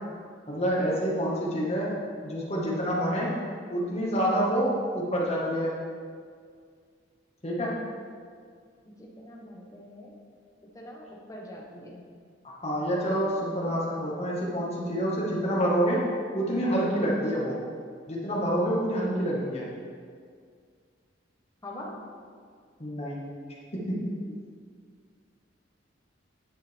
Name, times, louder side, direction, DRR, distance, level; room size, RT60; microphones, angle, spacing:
voice 1, 0.5-3.4 3.7-5.8 7.4-7.8 12.6-16.1 16.3-17.6 18.1-19.7 22.8-23.3 23.7-24.1, equal, 35° left, -4 dB, 1.8 m, -27 dB
voice 2, 9.0-10.1 10.7-12.0 17.2-17.4 21.6-22.0, equal, 20° left, -2 dB, 1.3 m, -43 dB
9.8 x 7.6 x 3.6 m, 2.1 s
head